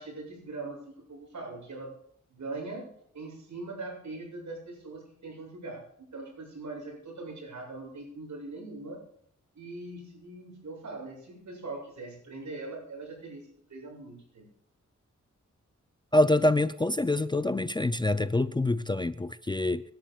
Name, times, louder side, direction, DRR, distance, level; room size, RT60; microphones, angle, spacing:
voice 1, 0.0-1.9 2.3-5.8 6.1-9.0 9.5-13.4 13.7-14.5, right 3 dB, 75° right, 7.3 m, -41 dB
voice 2, 16.1-19.8, left 1 dB, 15° left, 0.4 m, -26 dB
26.0 x 11.5 x 2.4 m
wide cardioid pair, 125°, 30 cm